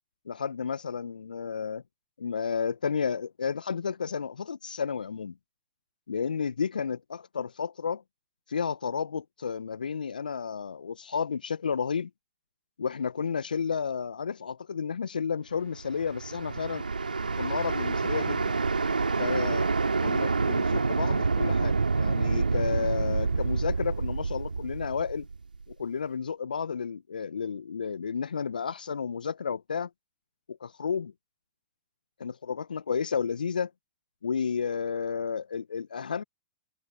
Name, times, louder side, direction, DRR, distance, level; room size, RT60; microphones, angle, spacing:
voice 1, 0.3-1.8 2.2-5.3 6.1-8.0 8.5-12.1 12.8-16.8 17.4-18.6 19.2-19.7 20.0-25.3 25.7-29.9 30.5-31.1 32.2-33.7 34.2-36.2, left 6 dB, 75° left, 1.1 m, -32 dB
sound 1, 15.7-25.7, right 4 dB, 80° right, 2.5 m, -28 dB
figure-of-eight pair, 105°, 5 cm